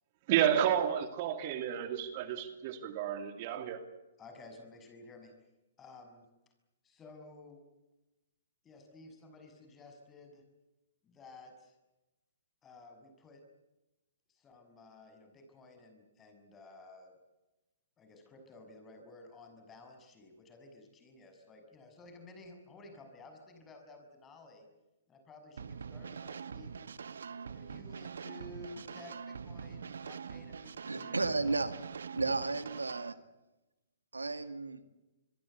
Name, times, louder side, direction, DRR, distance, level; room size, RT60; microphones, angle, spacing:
voice 1, 0.3-3.8, right 10 dB, 40° right, 8 dB, 2.6 m, -31 dB
voice 2, 4.2-5.3 5.8-6.2 6.8-7.6 8.6-10.4 11.0-11.8 12.6-13.4 14.3-17.1 18.0-24.7 25.1-26.7 27.3-31.6, left 2 dB, 20° left, 5 dB, 7.0 m, -54 dB
sound 1, 25.6-33.1, right 6 dB, 70° right, 1.3 m, -44 dB
voice 3, 30.9-31.7 32.1-33.2 34.1-34.8, right 3 dB, 85° right, 11 dB, 2.1 m, -33 dB
26.0 x 22.5 x 8.3 m, 1.0 s
figure-of-eight pair, 125°, 0 cm